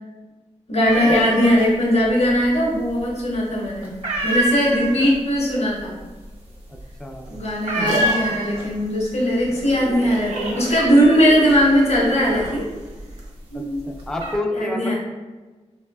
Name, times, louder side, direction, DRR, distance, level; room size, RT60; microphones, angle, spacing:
voice 1, 0.7-3.9 4.2-6.0 7.3-12.7 13.5-13.9 14.5-14.9, equal, 65° left, -4 dB, 0.9 m, -19 dB
sound 1, 0.8-1.7 2.0-2.8 3.1-3.5 3.8-8.9 9.2-9.8 10.1-13.3 13.8-14.4, right 1 dB, 50° right, 0.7 m, -27 dB
voice 2, 6.7-7.3 13.5-14.9, left 2 dB, 5° left, 2 dB, 0.3 m, -29 dB
sound 2, 7.3-13.3, right 2 dB, 85° right, 0.5 m, -31 dB
3.2 x 2.2 x 2.2 m, 1.3 s
wide cardioid pair, 70°, 12 cm